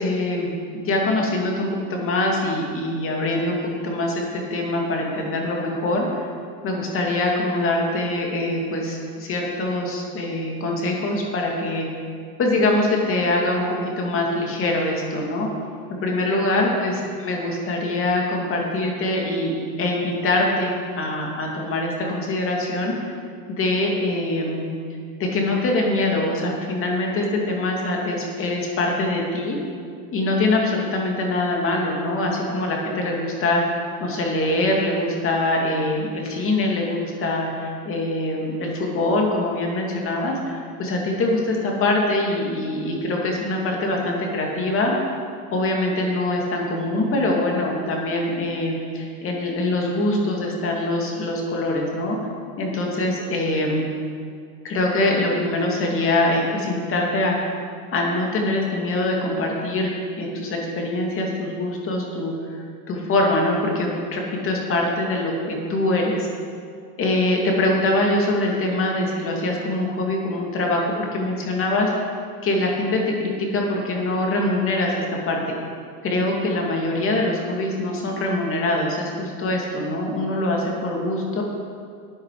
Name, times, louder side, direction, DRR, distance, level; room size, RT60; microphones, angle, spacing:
voice 1, 0.0-6.3 6.6-11.9 12.4-15.5 15.9-19.5 19.8-22.9 23.5-24.8 25.2-29.6 30.1-33.6 34.0-44.9 45.5-52.2 52.6-54.0 54.6-57.5 57.9-66.3 67.0-72.1 72.4-75.6 76.0-81.4, left 2 dB, 30° left, 0 dB, 2.5 m, -23 dB
13.0 x 9.4 x 4.9 m, 2.3 s
supercardioid pair, 130°, 44 cm